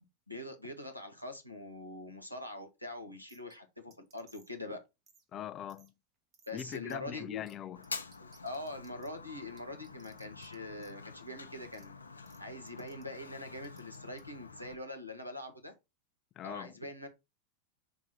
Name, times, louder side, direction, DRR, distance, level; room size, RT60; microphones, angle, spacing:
voice 1, 0.0-4.8 6.5-7.4 8.2-11.9 12.4-15.7 16.4-17.1, left 2 dB, 90° right, 1.4 m, -43 dB
sound 1, 3.3-3.6 3.9-4.6 5.1-5.2 5.7-5.9 6.3-7.0 7.5-7.6 7.8-9.1 9.6-10.5 10.8-10.9 11.7-11.8 12.3-12.4 12.7-13.0 13.6-14.2, right 5 dB, 30° right, 1.6 m, -62 dB
voice 2, 5.3-5.9 6.5-7.8 16.4-16.7, left 10 dB, 30° left, 0.4 m, -41 dB
Fire, 7.8-14.7, left 4 dB, 75° left, 0.7 m, -47 dB
6.0 x 3.6 x 4.4 m
figure-of-eight pair, 90°, 0 cm